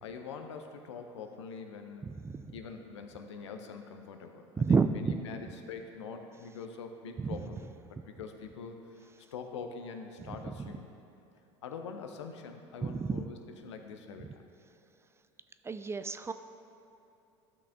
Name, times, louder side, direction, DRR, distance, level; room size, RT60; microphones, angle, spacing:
voice 1, 0.0-2.1 2.5-7.6 8.0-8.8 9.3-10.9 11.6-13.4 13.6-14.4, left 5 dB, 80° left, 5 dB, 0.7 m, -44 dB
voice 2, 2.0-2.5 4.6-5.2 7.2-7.5 10.2-10.6 12.8-13.2 15.6-16.3, right 5 dB, 20° right, 10 dB, 0.4 m, -30 dB
12.5 x 6.0 x 3.5 m, 2.8 s
hypercardioid pair, 75°, 15 cm